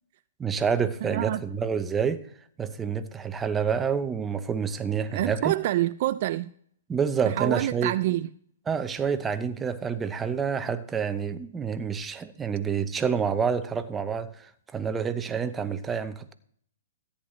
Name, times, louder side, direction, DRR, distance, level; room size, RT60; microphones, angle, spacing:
voice 1, 0.4-2.3 2.6-5.5 6.9-7.9 8.7-16.3, right 6 dB, 15° right, 0.8 m, -28 dB
voice 2, 1.0-1.4 5.1-6.5 7.3-8.3, right 14 dB, 50° right, 0.4 m, -27 dB
14.0 x 9.8 x 3.2 m
hypercardioid pair, 135°, 0 cm